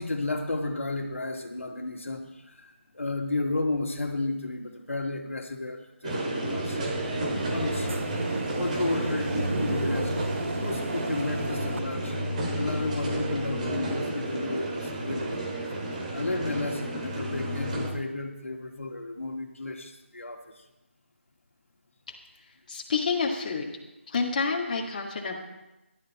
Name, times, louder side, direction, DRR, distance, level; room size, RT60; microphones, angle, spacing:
voice 1, 0.0-7.9 8.6-10.1 10.6-12.2 12.6-15.5 16.1-20.6, left 2 dB, 85° left, 2 dB, 2.2 m, -33 dB
sound 1, 6.0-17.9, right 1 dB, 35° right, 2.5 m, -31 dB
sound 2, 6.8-11.8, right 2 dB, 75° right, 0.9 m, -34 dB
voice 2, 22.7-23.7 24.1-25.4, left 4 dB, 35° left, -1 dB, 2.0 m, -28 dB
16.0 x 12.0 x 4.2 m, 0.98 s
figure-of-eight pair, 165°, 7 cm